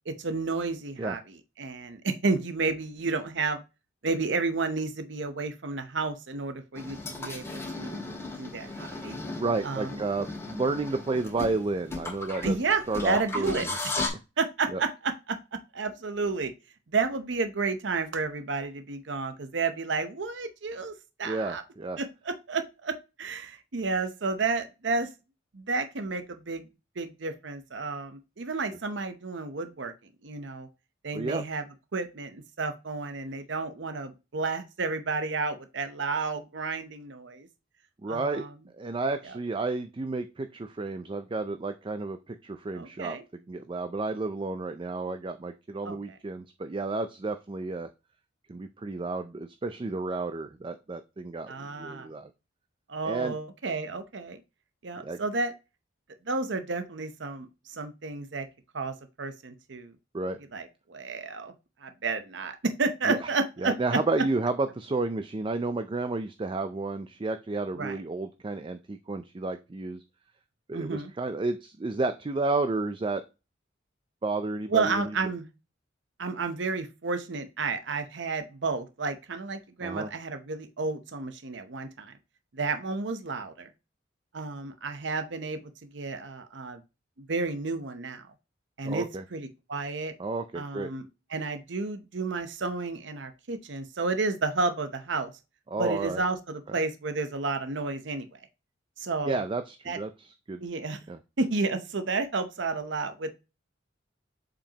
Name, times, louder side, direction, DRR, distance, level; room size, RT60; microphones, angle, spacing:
voice 1, 0.1-1.2 1.6-3.6 4.0-8.0 8.4-9.2 9.6-9.9 12.4-13.7 14.4-16.5 16.9-20.9 21.2-21.6 22.0-25.1 25.5-26.6 27.0-29.9 30.2-30.7 31.0-31.6 31.9-37.5 38.1-38.5 42.7-43.2 45.8-46.1 51.5-52.1 52.9-54.4 54.8-55.5 56.3-58.5 58.7-59.9 60.5-61.5 61.8-64.0 67.7-68.0 70.7-71.1 74.7-75.5 76.2-82.2 82.5-83.7 84.3-86.8 87.2-88.3 88.8-90.1 90.5-91.0 91.3-95.3 95.8-98.4 99.0-99.4 99.9-100.0 100.6-101.0 101.4-103.3, right 4 dB, 65° right, 9 dB, 0.8 m, -31 dB
sound 1, 6.8-14.1, left 2 dB, 15° left, 2.0 m, -36 dB
voice 2, 9.3-12.6 12.9-13.8 14.7-14.8 21.2-22.0 31.1-31.4 38.0-38.4 38.8-43.2 43.5-47.9 48.5-52.3 53.0-53.4 55.0-55.2 60.1-60.4 63.1-63.3 63.6-70.0 70.7-73.2 74.2-75.1 79.8-80.1 88.8-89.2 90.2-90.9 95.7-96.2 96.7-96.8 99.3-100.6 101.1-101.2, right 3 dB, 25° right, 9 dB, 0.4 m, -31 dB
7.2 x 5.2 x 2.9 m, 0.28 s
head